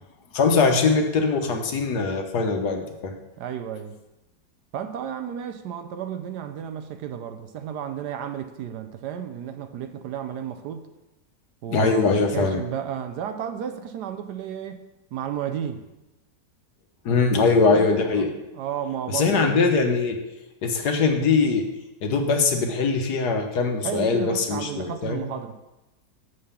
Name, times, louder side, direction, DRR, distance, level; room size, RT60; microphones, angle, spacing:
voice 1, 0.3-3.1 11.7-12.6 17.0-18.3 19.1-20.2 20.6-21.6 22.0-25.2, left 4 dB, 65° left, 4 dB, 1.4 m, -22 dB
voice 2, 3.4-4.0 4.7-10.9 11.6-14.8 15.1-15.8 17.7-18.3 18.5-19.6 23.7-25.6, right 9 dB, 70° right, 8 dB, 1.1 m, -33 dB
6.7 x 5.4 x 7.0 m, 0.98 s
omnidirectional pair, 1.9 m